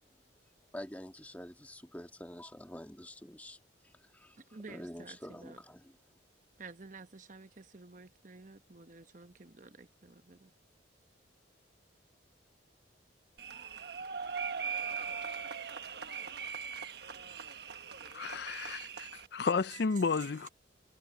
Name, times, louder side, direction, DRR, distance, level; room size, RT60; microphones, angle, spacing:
voice 1, 0.7-3.6 3.8-4.4 4.7-6.0, left 1 dB, 10° left, 1.8 m, -47 dB
voice 2, 4.5-5.6 6.6-10.5 19.7-20.4, right 4 dB, 40° right, 1.0 m, -51 dB
sound 1, 13.4-19.3, right 6 dB, 55° right, 1.3 m, -40 dB
voice 3, 18.1-20.5, left 4 dB, 60° left, 0.5 m, -32 dB
head